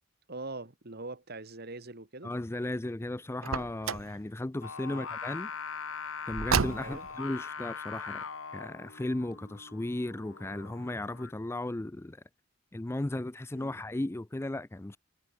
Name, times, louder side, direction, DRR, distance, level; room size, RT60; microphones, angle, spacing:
voice 1, 0.3-2.3 4.9-5.0 6.8-7.1 13.5-13.7, right 2 dB, 50° right, 2.4 m, -42 dB
voice 2, 2.2-5.5 6.3-8.3 8.5-12.2 12.7-15.0, left 1 dB, 15° left, 0.4 m, -35 dB
Car, 3.4-4.2 6.3-7.2, right 6 dB, 85° right, 0.8 m, -30 dB
Singing, 4.6-11.3, left 6 dB, 85° left, 1.8 m, -41 dB
head